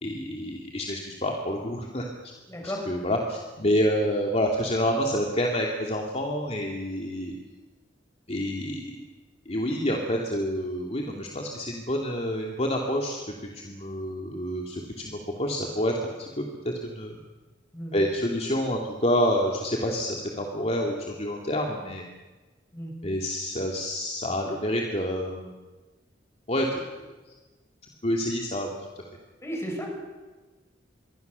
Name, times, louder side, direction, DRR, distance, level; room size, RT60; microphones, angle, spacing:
voice 1, 0.0-2.1 2.6-7.3 8.3-9.0 9.5-13.2 13.5-17.1 17.9-22.0 23.0-25.5 26.5-26.8 28.0-28.7, equal, 35° left, 0 dB, 2.8 m, -28 dB
voice 2, 2.5-2.8 17.7-17.9 22.7-22.9 29.4-29.9, equal, 15° left, 0 dB, 7.8 m, -34 dB
27.5 x 23.0 x 7.0 m, 1.2 s
head